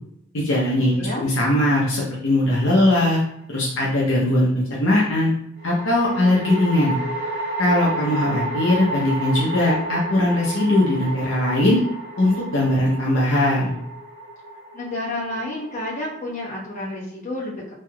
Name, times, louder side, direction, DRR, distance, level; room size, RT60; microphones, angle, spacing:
voice 1, 0.3-0.9 1.2-3.2 3.5-5.3 5.6-6.9 7.6-11.8 12.2-13.8, left 1 dB, 70° left, -5 dB, 0.7 m, -20 dB
voice 2, 0.8-1.3 14.7-17.5, left 1 dB, 40° left, -7 dB, 1.2 m, -30 dB
sound 1, 2.5-3.2 5.6-16.9, right 1 dB, 50° right, 1.1 m, -31 dB
3.3 x 2.7 x 2.3 m, 0.73 s
head